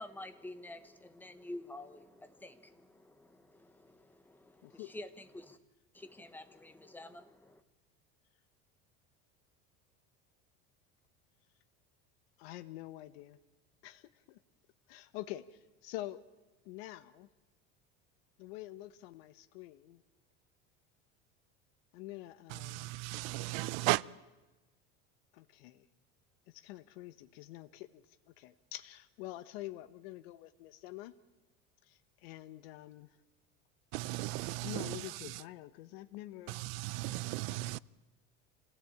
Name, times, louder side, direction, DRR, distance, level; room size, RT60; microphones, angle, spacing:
voice 1, 0.0-5.6 5.9-7.6, left 1 dB, 5° left, 1.1 m, -49 dB
voice 2, 4.6-4.9 12.4-13.4 13.8-14.4 14.9-16.2 16.6-17.3 18.4-20.0 21.9-22.9 25.3-25.9 26.5-28.0 28.4-31.1 31.8-33.1 34.6-36.6, left 16 dB, 85° left, 1.1 m, -47 dB
voice 3, 22.5-24.0 33.9-35.4 36.5-37.8, right 21 dB, 70° right, 0.7 m, -36 dB
26.5 x 16.5 x 8.7 m
cardioid pair, 165°, 30 cm